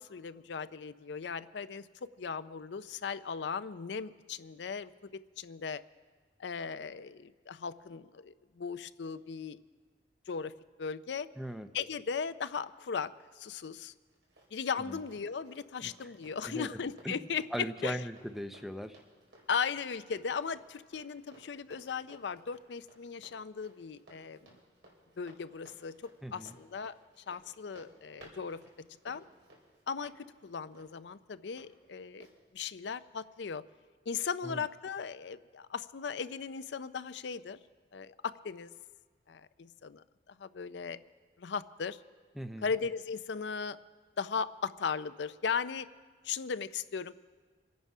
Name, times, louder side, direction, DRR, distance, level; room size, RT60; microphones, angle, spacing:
voice 1, 0.0-5.1 5.4-5.8 6.4-9.6 10.3-10.5 10.8-11.3 11.7-13.9 14.5-17.4 17.8-18.0 19.5-24.5 25.2-28.6 29.0-29.2 29.9-32.3 32.5-33.6 34.1-37.6 37.9-38.7 39.3-41.0 41.4-42.0 42.6-43.8 44.2-45.9 46.2-47.1, left 6 dB, 70° left, 13 dB, 0.5 m, -37 dB
voice 2, 11.4-11.7 14.9-15.0 15.8-16.1 16.5-16.8 17.0-19.0 26.2-26.5 34.4-34.6 42.4-42.7, equal, ahead, 8 dB, 0.5 m, -39 dB
Run, 13.9-31.7 32.2-32.3, right 1 dB, 85° right, 4.7 m, -60 dB
26.0 x 9.5 x 5.5 m, 1.5 s
head